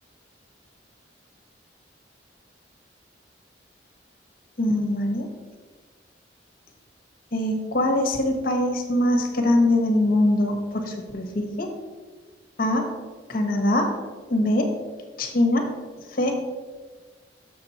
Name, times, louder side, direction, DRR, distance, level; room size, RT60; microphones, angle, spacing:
voice 1, 4.6-5.3 7.3-11.7 12.6-12.8 13.3-13.9 14.3-14.7 15.2-15.6 16.2-16.4, left 1 dB, 55° left, 4 dB, 1.3 m, -22 dB
7.0 x 6.3 x 4.2 m, 1.4 s
head